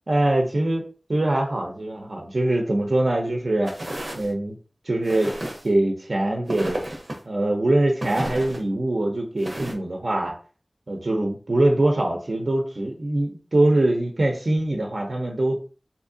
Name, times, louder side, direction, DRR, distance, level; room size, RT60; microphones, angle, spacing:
voice 1, 0.1-0.8 1.1-3.7 4.1-4.6 4.9-5.3 5.6-6.8 7.3-10.3 10.9-15.6, right 1 dB, 70° right, 1 dB, 0.7 m, -23 dB
sound 1, 3.7-4.3 5.0-5.7 6.5-7.2 8.0-8.6 9.4-9.7, right 1 dB, 50° right, 0.9 m, -32 dB
3.6 x 2.8 x 2.7 m, 0.37 s
wide cardioid pair, 55°, 0 cm